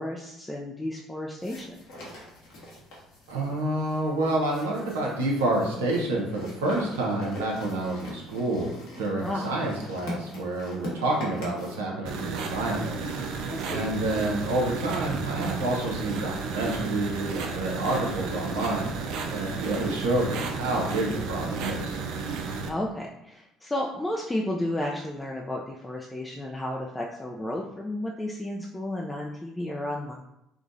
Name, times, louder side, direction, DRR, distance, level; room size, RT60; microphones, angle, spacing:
voice 1, 0.0-1.7 9.2-9.5 13.5-13.9 19.6-19.9 22.7-30.1, left 1 dB, 15° left, -1 dB, 0.5 m, -32 dB
sound 1, 1.4-11.8, left 1 dB, 75° left, 1.2 m, -43 dB
voice 2, 3.3-13.3 13.7-18.9 19.3-22.0, right 2 dB, 90° right, -2 dB, 0.8 m, -28 dB
sound 2, 12.1-22.7, right 4 dB, 70° right, 0.5 m, -33 dB
4.8 x 2.3 x 2.6 m, 0.85 s
hypercardioid pair, 65°, 0 cm